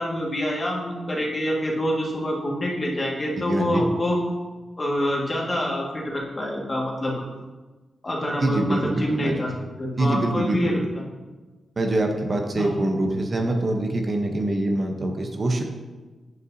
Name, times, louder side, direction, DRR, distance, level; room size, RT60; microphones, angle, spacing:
voice 1, 0.0-4.2 4.8-7.2 8.0-9.5 9.8-11.0 12.6-12.7, equal, 35° left, -3 dB, 1.7 m, -26 dB
voice 2, 3.4-3.9 8.4-9.3 10.0-10.7 11.8-15.6, right 1 dB, 45° right, 3 dB, 0.8 m, -24 dB
9.2 x 5.3 x 2.7 m, 1.3 s
cardioid pair, 70°, 0 cm